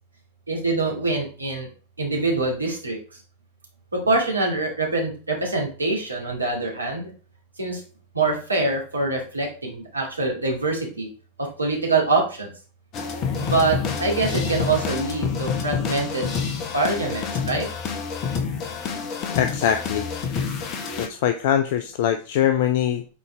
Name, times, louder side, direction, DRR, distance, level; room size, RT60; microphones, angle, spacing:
voice 1, 0.5-1.7 2.0-3.0 3.9-7.1 7.6-7.8 8.1-11.1 11.4-12.5 13.4-16.3 16.7-17.7, right 3 dB, 80° right, 0 dB, 2.3 m, -24 dB
sound 1, 12.9-21.1, left 6 dB, 35° left, 1.4 m, -28 dB
voice 2, 19.3-20.1 21.0-23.1, left 10 dB, 50° left, 7 dB, 0.6 m, -22 dB
8.5 x 4.2 x 3.4 m, 0.38 s
figure-of-eight pair, 90°, 0 cm